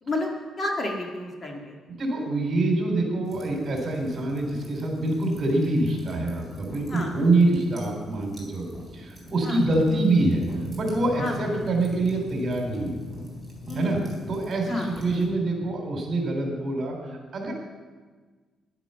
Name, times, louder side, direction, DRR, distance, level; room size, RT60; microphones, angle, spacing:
voice 1, 0.0-1.8 6.9-7.1 9.4-9.6 11.2-11.4 13.7-14.0 14.7-14.9, left 1 dB, 35° left, 1 dB, 1.8 m, -31 dB
voice 2, 1.9-8.7 8.9-10.5 10.7-13.0 13.7-14.0 14.3-17.0 17.3-17.5, right 2 dB, 45° right, 1 dB, 3.7 m, -25 dB
sound 1, 3.2-15.2, equal, 15° left, 3.9 m, -44 dB
sound 2, 10.5-15.6, left 1 dB, 25° right, 3.8 m, -42 dB
11.0 x 11.0 x 5.6 m, 1.4 s
cardioid pair, 115°, 0 cm